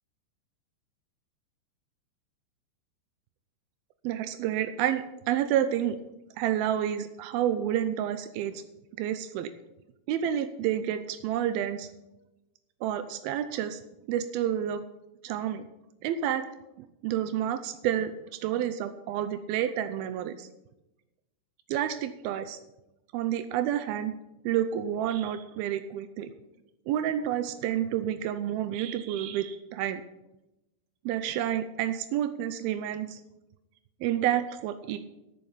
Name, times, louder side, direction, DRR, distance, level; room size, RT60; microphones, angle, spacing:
voice 1, 4.0-6.0 6.4-8.6 9.0-9.5 10.1-11.9 12.8-13.8 14.1-14.8 15.2-15.7 16.0-16.5 16.8-20.5 21.7-22.6 23.1-24.2 24.4-26.3 26.9-30.0 31.1-33.2 34.0-35.0, right 10 dB, 90° right, 11 dB, 2.1 m, -29 dB
10.5 x 9.9 x 5.6 m, 0.94 s
omnidirectional pair, 5.2 m